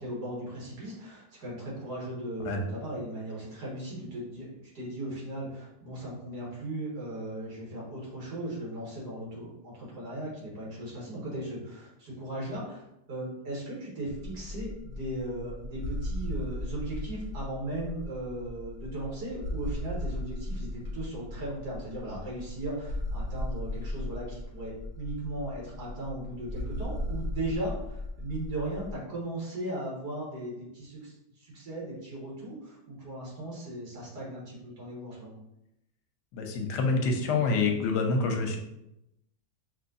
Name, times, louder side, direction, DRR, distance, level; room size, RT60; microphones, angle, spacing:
voice 1, 0.0-4.5 4.7-12.8 13.1-35.4, right 1 dB, 80° right, -5 dB, 2.0 m, -37 dB
sound 1, 14.1-28.9, left 1 dB, 45° right, 1.0 m, -37 dB
voice 2, 36.3-38.6, left 4 dB, 85° left, 3 dB, 1.3 m, -27 dB
5.4 x 3.1 x 2.6 m, 0.86 s
omnidirectional pair, 1.8 m